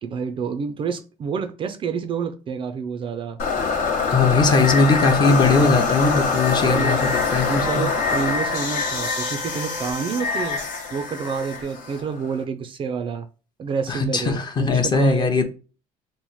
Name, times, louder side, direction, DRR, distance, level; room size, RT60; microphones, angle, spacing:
voice 1, 0.0-3.4 5.5-5.8 6.5-7.1 7.5-10.6 10.9-13.3 13.6-15.4, right 6 dB, 35° right, 0.3 m, -28 dB
sound 1, 3.4-12.4, left 4 dB, 80° left, 1.0 m, -24 dB
voice 2, 4.1-7.8 13.9-15.4, left 3 dB, 30° left, 0.6 m, -20 dB
3.0 x 2.1 x 4.0 m
cardioid pair, 115°, 14 cm